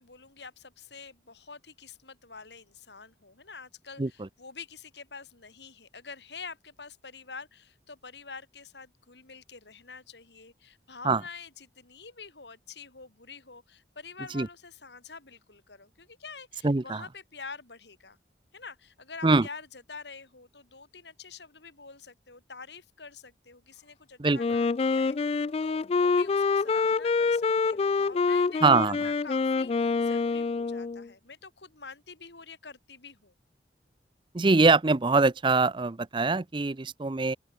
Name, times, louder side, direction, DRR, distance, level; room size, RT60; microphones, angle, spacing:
voice 1, 0.0-18.2 18.5-33.3, left 5 dB, 80° left, 4.1 m, -47 dB
voice 2, 16.6-17.0 19.2-19.5 24.2-24.4 28.6-29.0 34.3-37.4, right 3 dB, 30° right, 0.6 m, -23 dB
Wind instrument woodwind instrument, 24.4-31.1, left 4 dB, 35° left, 0.3 m, -26 dB
open air
head